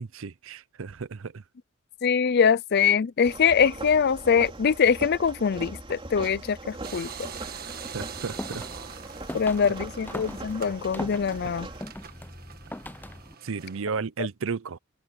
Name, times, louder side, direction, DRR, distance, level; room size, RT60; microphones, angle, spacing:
voice 1, 0.0-1.4 7.5-7.6 7.9-8.6 13.4-14.8, right 5 dB, 65° right, 0.6 m, -33 dB
voice 2, 2.0-7.1 9.3-11.7, left 6 dB, 50° left, 0.5 m, -23 dB
sound 1, 3.2-11.8, right 2 dB, 25° right, 3.4 m, -40 dB
sound 2, 6.8-13.8, right 7 dB, 45° right, 1.6 m, -43 dB
sound 3, 8.1-13.3, left 1 dB, 10° left, 0.6 m, -40 dB
open air
head